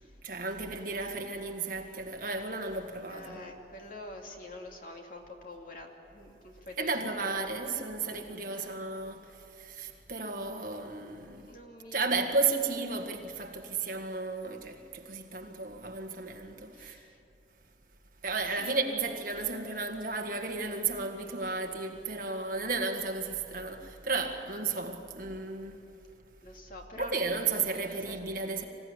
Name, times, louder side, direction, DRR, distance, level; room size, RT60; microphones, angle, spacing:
voice 1, 0.2-3.4 6.8-11.5 11.9-17.0 18.2-25.8 26.9-28.7, right 4 dB, 50° right, 1.8 m, -33 dB
voice 2, 3.0-6.9 7.2-7.8 8.1-8.8 10.2-10.6 11.4-12.4 16.7-17.2 18.6-18.8 26.4-28.2 28.5-28.7, left 1 dB, 50° left, 2.6 m, -47 dB
25.5 x 16.5 x 9.9 m
head